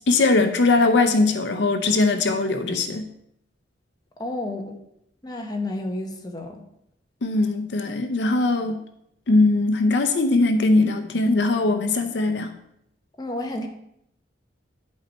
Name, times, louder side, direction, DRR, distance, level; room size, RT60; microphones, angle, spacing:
voice 1, 0.1-3.0 7.2-8.8 9.3-12.5, left 3 dB, 70° left, 7 dB, 0.6 m, -20 dB
voice 2, 4.2-4.8 5.2-6.6 13.2-13.7, left 1 dB, 20° left, 2 dB, 0.9 m, -30 dB
11.0 x 4.2 x 4.4 m, 0.76 s
head